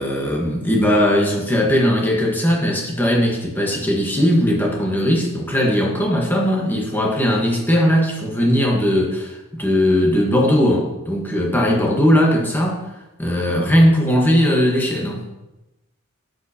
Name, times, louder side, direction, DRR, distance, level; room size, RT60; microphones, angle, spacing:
voice 1, 0.0-12.8 13.2-15.2, equal, 10° left, -1 dB, 1.4 m, -18 dB
9.3 x 9.1 x 2.9 m, 0.98 s
head